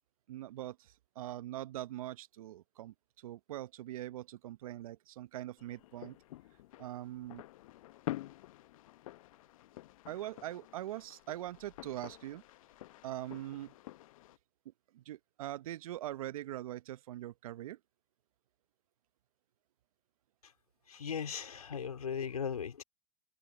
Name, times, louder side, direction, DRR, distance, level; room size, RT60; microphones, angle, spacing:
voice 1, 0.3-6.2 6.8-7.4 10.1-12.4 13.0-13.7 14.9-17.8, right 14 dB, 70° right, 0.9 m, -42 dB
sound 1, 5.6-14.4, left 16 dB, 65° left, 0.9 m, -48 dB
voice 2, 20.9-22.8, left 7 dB, 90° left, 4.0 m, -38 dB
hypercardioid pair, 100°, 19 cm